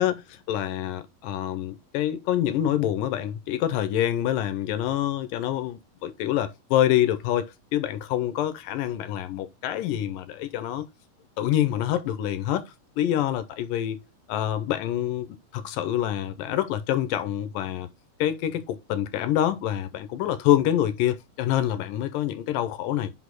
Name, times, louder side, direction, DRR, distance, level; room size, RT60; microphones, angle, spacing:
voice 1, 0.0-10.9 11.4-14.0 14.3-17.9 18.2-23.1, left 12 dB, 80° left, 2.2 m, -26 dB
5.5 x 4.1 x 4.5 m
omnidirectional pair, 4.1 m